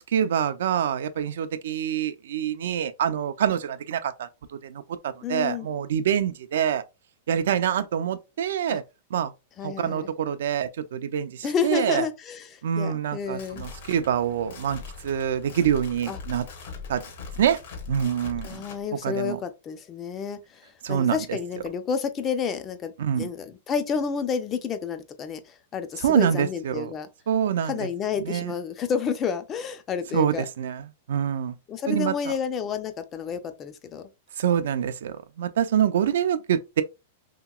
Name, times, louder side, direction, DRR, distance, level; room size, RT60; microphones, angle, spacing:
voice 1, 0.0-6.8 7.3-8.8 9.1-9.3 9.6-12.1 12.6-16.5 16.9-17.0 17.4-17.6 17.9-18.7 18.9-19.4 20.8-21.4 23.0-23.3 26.0-26.9 27.3-27.9 28.2-28.5 30.1-31.6 31.9-32.3 34.4-36.8, right 9 dB, 75° right, 0.4 m, -26 dB
voice 2, 5.2-5.7 8.7-8.8 9.6-10.1 11.4-13.7 16.1-16.2 18.4-27.1 27.6-30.4 31.7-34.1, left 6 dB, 20° left, 0.3 m, -30 dB
sound 1, 13.2-18.8, left 5 dB, 60° left, 0.8 m, -41 dB
2.8 x 2.8 x 2.2 m
supercardioid pair, 160°, 0 cm